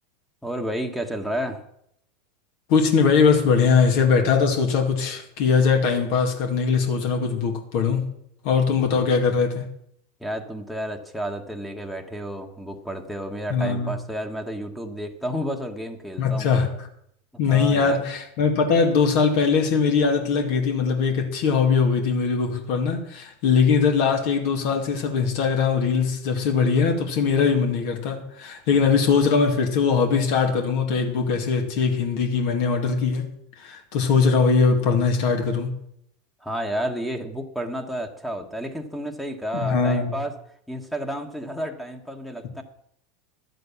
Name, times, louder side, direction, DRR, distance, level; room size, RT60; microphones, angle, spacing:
voice 1, 0.4-1.6 10.2-16.5 17.5-18.0 36.4-40.3 40.7-42.6, equal, 5° left, 1.4 m, -31 dB
voice 2, 2.7-8.1 8.4-9.6 13.5-13.9 16.2-16.7 17.4-35.8 39.5-40.1, left 5 dB, 65° left, 2.2 m, -21 dB
12.0 x 7.8 x 7.1 m
hypercardioid pair, 100°, 0 cm